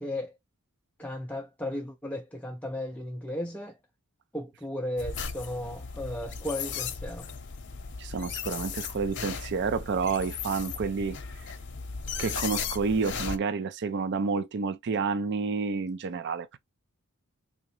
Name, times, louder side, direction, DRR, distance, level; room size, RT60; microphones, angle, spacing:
voice 1, 0.0-0.4 1.0-3.8 4.3-7.3, left 1 dB, 5° left, 0.4 m, -35 dB
sound 1, 5.0-13.4, left 6 dB, 55° left, 0.7 m, -36 dB
voice 2, 8.0-11.2 12.2-16.6, right 5 dB, 55° right, 0.4 m, -29 dB
3.8 x 2.8 x 3.1 m
head